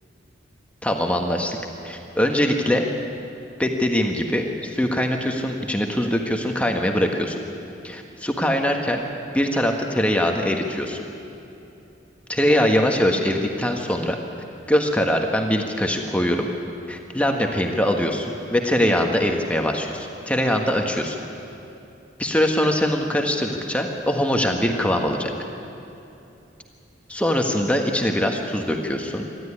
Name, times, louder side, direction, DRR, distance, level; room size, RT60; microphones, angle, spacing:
voice 1, 0.8-1.6 1.8-2.9 3.6-7.4 7.8-9.0 9.3-11.0 12.3-14.2 14.7-16.5 16.9-21.2 22.2-25.3 27.1-29.2, equal, 5° left, 2 dB, 1.4 m, -22 dB
26.5 x 12.5 x 9.8 m, 2.9 s
head